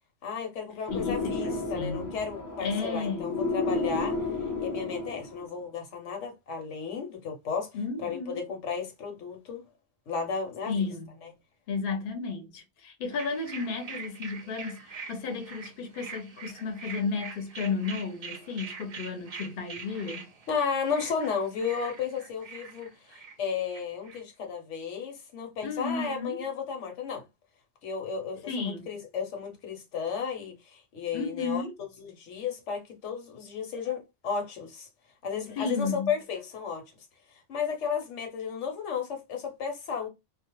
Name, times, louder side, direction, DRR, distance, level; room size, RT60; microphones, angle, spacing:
voice 1, 0.2-4.2 4.6-7.7 8.0-9.6 10.1-10.9 20.5-27.2 27.8-34.9 35.2-36.8 37.5-40.1, left 6 dB, 85° left, 1.1 m, -33 dB
voice 2, 0.9-2.1 2.6-3.3 7.7-8.4 10.7-11.1 11.7-20.3 25.6-26.5 28.5-28.9 31.1-31.7 35.6-36.1, left 4 dB, 55° left, 0.7 m, -33 dB
sound 1, 0.9-5.5, left 3 dB, 25° left, 0.4 m, -32 dB
sound 2, 13.1-24.2, right 5 dB, 45° right, 0.5 m, -44 dB
2.4 x 2.1 x 2.9 m
omnidirectional pair, 1.2 m